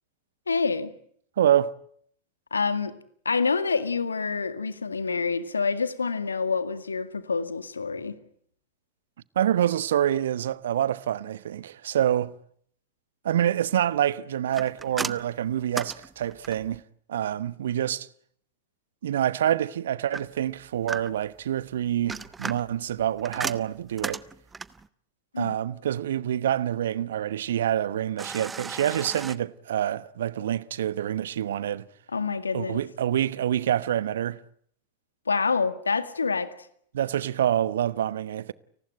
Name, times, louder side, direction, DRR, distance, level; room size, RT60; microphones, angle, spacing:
voice 1, 0.5-0.9 2.5-2.9 3.3-8.1 25.3-25.6 32.1-32.8 35.3-36.5, left 4 dB, 75° left, 2.0 m, -27 dB
voice 2, 1.4-1.8 9.3-12.3 13.2-16.8 17.1-18.1 19.0-24.2 25.4-31.9 32.5-34.4 36.9-38.5, right 11 dB, 60° right, 1.1 m, -26 dB
sound 1, 14.5-16.8 20.1-21.4 21.9-24.9 28.2-29.4, right 4 dB, 15° right, 1.0 m, -36 dB
30.0 x 19.5 x 8.9 m
figure-of-eight pair, 90°, 0 cm